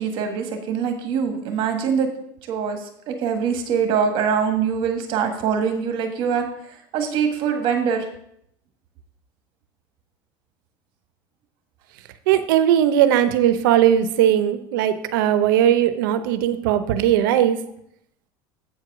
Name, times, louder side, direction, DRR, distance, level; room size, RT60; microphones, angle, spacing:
voice 1, 0.0-2.1 2.5-2.8 3.1-6.4 6.9-8.1, right 7 dB, 50° right, 5 dB, 1.5 m, -23 dB
voice 2, 12.3-17.6, right 10 dB, 90° right, 11 dB, 0.7 m, -18 dB
8.3 x 4.7 x 6.0 m, 0.73 s
cardioid pair, 145°, 11 cm